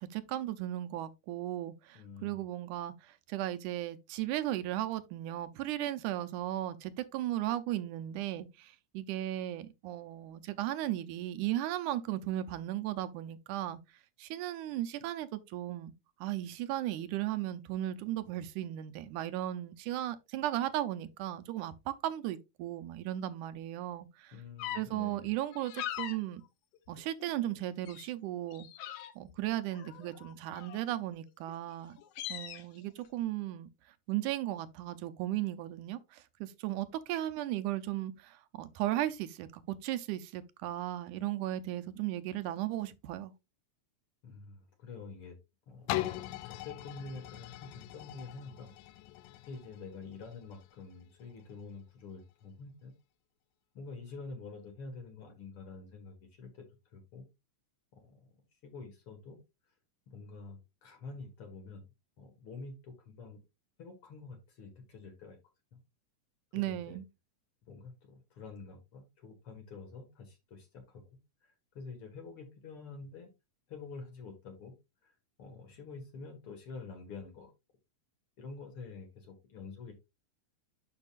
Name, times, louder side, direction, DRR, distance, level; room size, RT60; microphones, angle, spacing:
voice 1, 0.0-13.8 14.2-15.9 16.2-24.3 24.8-26.4 26.9-28.7 29.2-32.0 32.3-33.7 34.1-43.3 66.5-67.0, right 13 dB, 85° right, 2.2 m, -36 dB
voice 2, 1.9-2.4 24.3-25.3 44.2-45.4 45.7-48.7 49.5-52.9 53.7-56.7 56.9-57.3 57.9-58.3 58.6-59.4 60.1-61.8 62.2-63.4 63.8-65.4 66.5-67.0 67.6-71.0 71.4-73.3 73.7-74.7 75.0-75.1 75.4-77.5 78.4-79.9, left 4 dB, 50° left, 2.4 m, -47 dB
sound 1, 24.6-24.8 25.5-26.2 26.7-27.5 27.9-28.1 28.5-29.3 29.7-30.9 31.5-31.6 31.9-32.6, left 11 dB, 70° left, 1.7 m, -41 dB
sound 2, 45.9-51.6 52.2-52.3, left 15 dB, 85° left, 2.1 m, -41 dB
10.5 x 5.4 x 2.5 m
omnidirectional pair, 3.5 m